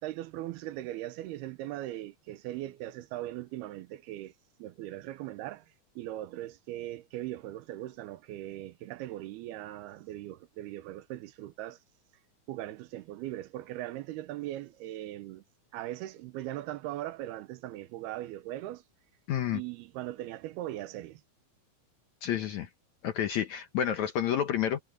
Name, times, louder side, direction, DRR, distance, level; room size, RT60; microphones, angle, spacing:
voice 1, 0.0-4.3 4.6-5.7 6.0-11.8 12.5-15.4 15.7-18.8 19.5-21.2, right 14 dB, 90° right, 2.9 m, -39 dB
voice 2, 19.3-19.6 22.2-22.7 23.0-24.8, left 10 dB, 70° left, 1.9 m, -29 dB
omnidirectional pair, 4.4 m